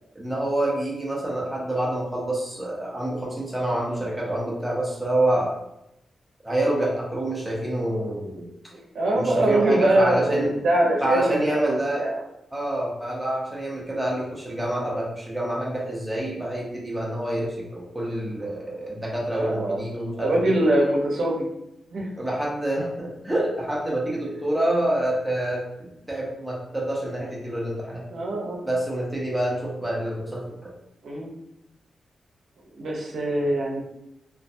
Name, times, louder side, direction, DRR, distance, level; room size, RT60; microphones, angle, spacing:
voice 1, 0.1-5.5 6.4-8.5 9.1-10.5 11.0-12.1 12.5-20.5 22.2-28.0 28.6-30.7, right 1 dB, 5° right, -4 dB, 0.7 m, -27 dB
voice 2, 8.7-12.2 19.4-19.9 20.2-21.4 21.9-22.1 28.1-28.6 31.0-31.3 32.8-33.8, right 1 dB, 70° right, -2 dB, 0.7 m, -23 dB
2.4 x 2.2 x 2.6 m, 0.82 s
wide cardioid pair, 135°, 0 cm